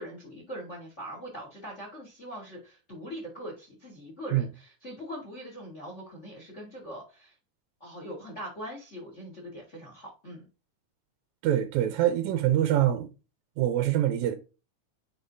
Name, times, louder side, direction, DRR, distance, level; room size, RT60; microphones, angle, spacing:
voice 1, 0.0-7.3 7.8-10.4, equal, 40° left, 1.1 m, -42 dB
voice 2, 11.4-13.1 13.6-14.3, right 12 dB, 75° right, 1.8 m, -24 dB
9.8 x 3.7 x 2.6 m
omnidirectional pair, 3.9 m